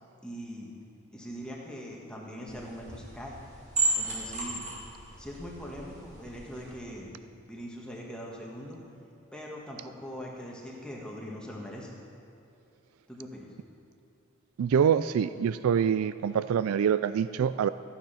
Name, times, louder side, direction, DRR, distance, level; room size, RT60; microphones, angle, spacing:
voice 1, 0.2-0.7 1.1-3.3 3.9-4.6 5.2-7.1 7.5-8.8 9.3-11.9 13.1-13.5, equal, 5° left, -3 dB, 1.6 m, -41 dB
sound 1, 2.5-6.7, right 3 dB, 30° right, 2.3 m, -34 dB
voice 2, 14.6-17.7, right 8 dB, 75° right, 14 dB, 0.3 m, -25 dB
14.5 x 9.4 x 5.7 m, 2.6 s
head